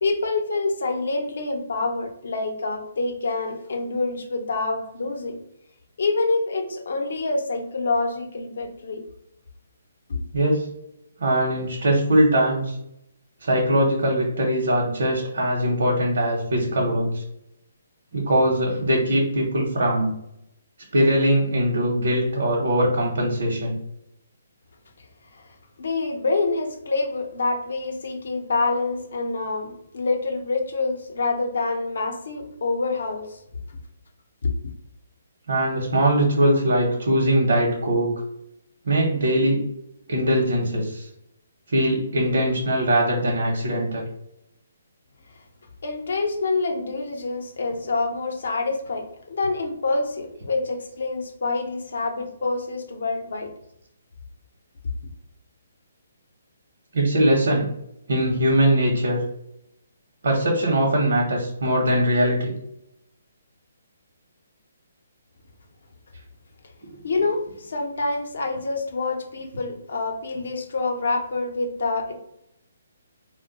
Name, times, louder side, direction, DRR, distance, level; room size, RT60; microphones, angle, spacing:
voice 1, 0.0-5.4 6.0-9.0 10.1-10.2 25.3-25.4 25.8-33.4 34.4-34.5 45.8-53.5 67.0-72.1, left 3 dB, 70° left, 4 dB, 0.6 m, -26 dB
voice 2, 10.3-10.7 11.2-12.8 13.4-17.2 18.1-20.1 20.9-23.8 35.5-38.1 38.9-39.6 40.1-41.1 41.7-44.0 56.9-57.7 58.1-59.2 60.2-62.5, right 1 dB, 75° right, -1 dB, 0.8 m, -21 dB
2.2 x 2.2 x 3.9 m, 0.79 s
hypercardioid pair, 160°, 0 cm